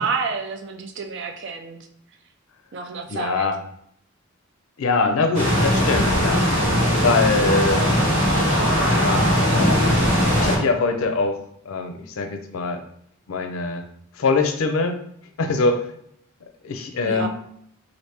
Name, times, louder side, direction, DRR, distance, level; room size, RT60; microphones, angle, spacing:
voice 1, 0.0-1.8 2.7-3.5 17.0-17.3, right 5 dB, 60° right, 6 dB, 0.4 m, -29 dB
voice 2, 3.1-3.6 4.8-6.4 7.0-7.9 8.9-9.9 10.4-11.4 11.7-12.8 13.3-13.8 14.2-15.0 15.4-15.8 16.6-17.3, left 3 dB, 90° left, 6 dB, 0.5 m, -23 dB
sound 1, 5.3-10.6, equal, 90° right, 1.3 m, -19 dB
2.9 x 2.5 x 3.3 m, 0.70 s
head